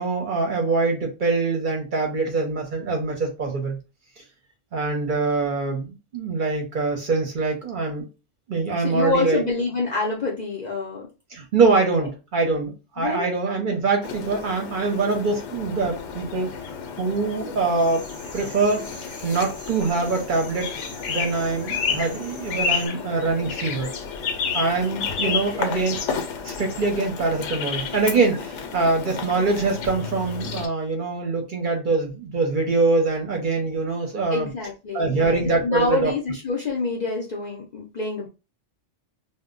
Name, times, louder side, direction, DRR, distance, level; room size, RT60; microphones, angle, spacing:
voice 1, 0.0-3.8 4.7-8.1 8.5-9.4 11.3-16.5 17.0-18.0 18.3-18.9 19.2-20.7 21.1-23.9 24.5-26.0 26.4-34.5 34.9-36.1, right 3 dB, 55° right, 0.7 m, -24 dB
voice 2, 8.8-11.1 13.0-13.3 25.2-25.8 34.3-38.3, left 3 dB, 55° left, 0.5 m, -27 dB
sound 1, 14.0-30.7, left 6 dB, 80° left, 0.9 m, -31 dB
sound 2, 17.7-22.9, equal, 15° right, 0.8 m, -43 dB
2.1 x 2.1 x 3.6 m
omnidirectional pair, 1.2 m